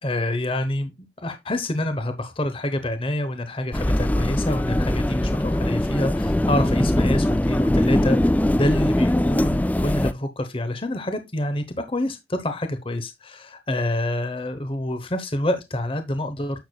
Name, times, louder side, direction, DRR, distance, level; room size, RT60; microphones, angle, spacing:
voice 1, 0.0-16.7, left 1 dB, 30° left, 0.9 m, -27 dB
sound 1, 3.7-10.1, left 1 dB, 10° left, 0.3 m, -21 dB
10.5 x 6.8 x 2.3 m
head